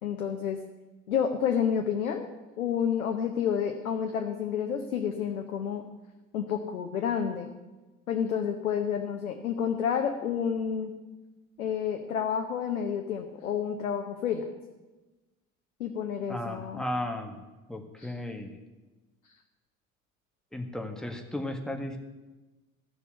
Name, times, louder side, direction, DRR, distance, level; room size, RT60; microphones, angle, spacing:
voice 1, 0.0-0.6 1.1-2.3 2.6-5.8 6.3-7.5 8.1-10.9 11.6-14.6 15.8-16.8 18.0-18.1, left 8 dB, 80° left, 5 dB, 0.9 m, -30 dB
voice 2, 16.3-17.4 17.7-18.5 20.5-22.0, left 1 dB, ahead, 3 dB, 1.8 m, -35 dB
14.0 x 6.8 x 8.1 m, 1.1 s
figure-of-eight pair, 60°, 42 cm